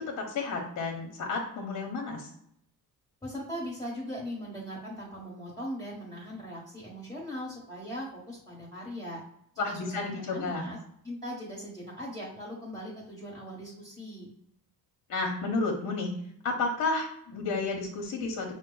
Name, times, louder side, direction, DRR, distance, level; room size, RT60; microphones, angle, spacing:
voice 1, 0.0-2.3 9.6-10.7 15.1-16.1 16.4-18.5, left 3 dB, 55° left, 1 dB, 1.0 m, -31 dB
voice 2, 3.2-9.2 9.5-10.8 11.0-14.3, equal, 10° left, -6 dB, 1.3 m, -39 dB
6.1 x 2.1 x 3.9 m, 0.70 s
cardioid pair, 160°, 37 cm